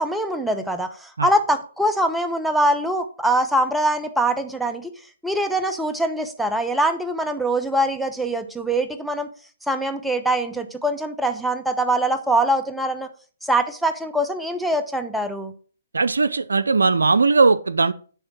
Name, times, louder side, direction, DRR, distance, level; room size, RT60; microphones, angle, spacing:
voice 1, 0.0-4.9 5.2-9.3 9.7-13.1 13.4-15.5, right 1 dB, ahead, 0.8 m, -23 dB
voice 2, 15.9-17.9, right 4 dB, 85° right, 0.5 m, -18 dB
9.8 x 3.6 x 6.0 m
hypercardioid pair, 135°, 0 cm